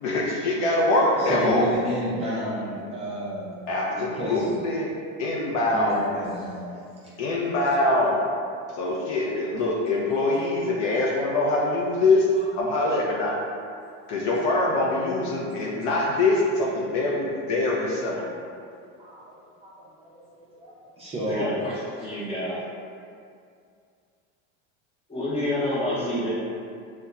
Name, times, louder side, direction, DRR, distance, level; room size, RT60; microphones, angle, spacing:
voice 1, 0.0-1.7 3.7-4.9 5.2-6.0 7.2-8.2 8.7-12.3 12.5-13.4 14.1-18.3, left 2 dB, 50° left, -3 dB, 0.5 m, -24 dB
voice 2, 1.2-4.6 5.6-6.8 8.9-9.3 9.6-9.7 12.3-12.4 15.5-15.6 18.6-18.7 19.0-21.5 21.9-22.1, equal, 15° right, -9 dB, 0.5 m, -32 dB
voice 3, 21.3-22.6 25.1-26.3, left 1 dB, 15° left, -8 dB, 0.7 m, -28 dB
2.8 x 2.1 x 2.3 m, 2.3 s
supercardioid pair, 120°, 35 cm